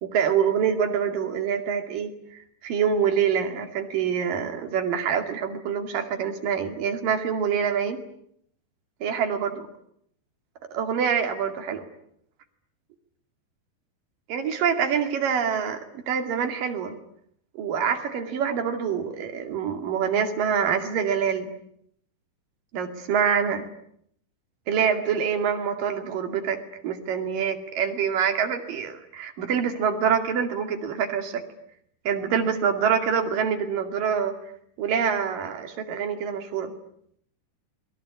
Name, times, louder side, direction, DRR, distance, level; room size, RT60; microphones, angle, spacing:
voice 1, 0.0-8.0 9.0-9.5 10.7-11.8 14.3-16.9 17.6-21.5 22.7-23.6 24.7-31.4 32.1-34.3 34.8-36.7, right 7 dB, 80° right, 6 dB, 4.0 m, -26 dB
29.5 x 22.0 x 8.4 m, 0.70 s
omnidirectional pair, 3.8 m